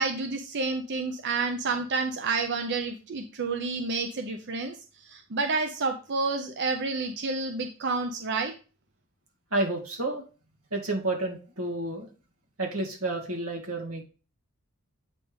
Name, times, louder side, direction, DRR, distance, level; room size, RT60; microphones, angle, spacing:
voice 1, 0.0-8.5, right 3 dB, 50° right, 5 dB, 0.7 m, -29 dB
voice 2, 9.5-10.2 10.7-12.1 12.6-14.0, right 2 dB, 75° right, -1 dB, 2.3 m, -30 dB
8.3 x 3.7 x 5.0 m, 0.35 s
head